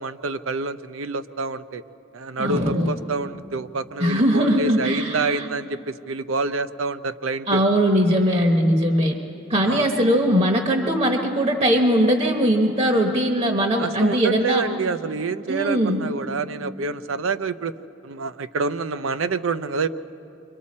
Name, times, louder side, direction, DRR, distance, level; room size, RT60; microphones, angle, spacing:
voice 1, 0.0-1.8 2.1-7.6 9.6-9.9 13.8-17.7 18.0-19.9, right 4 dB, 85° right, 11 dB, 0.6 m, -27 dB
voice 2, 2.4-2.9 4.0-5.5 7.5-9.2 9.5-14.7 15.5-16.1, equal, 30° right, 2 dB, 1.0 m, -20 dB
29.0 x 24.5 x 4.3 m, 2.9 s
head